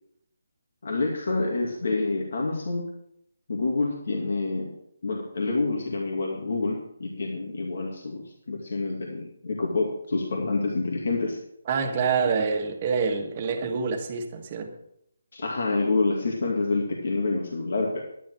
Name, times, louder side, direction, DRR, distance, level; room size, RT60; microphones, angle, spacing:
voice 1, 0.8-2.8 3.5-4.7 5.0-11.4 12.3-12.4 15.3-18.0, left 3 dB, 65° left, -1 dB, 2.4 m, -27 dB
voice 2, 11.7-14.7, right 5 dB, 30° right, 4 dB, 1.4 m, -26 dB
10.5 x 10.5 x 4.7 m, 0.76 s
hypercardioid pair, 160°, 0 cm